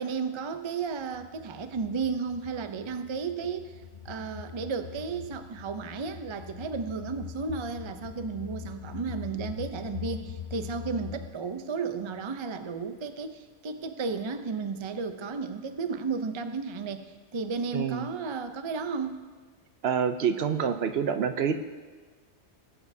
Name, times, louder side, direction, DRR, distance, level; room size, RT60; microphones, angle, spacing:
voice 1, 0.0-3.7 4.0-19.2, right 5 dB, 40° right, 8 dB, 0.4 m, -33 dB
sound 1, 1.1-11.3, left 8 dB, 55° left, 0.6 m, -42 dB
voice 2, 17.7-18.1 19.8-21.5, right 7 dB, 65° right, 8 dB, 0.8 m, -27 dB
20.0 x 8.4 x 2.7 m, 1.4 s
omnidirectional pair, 1.2 m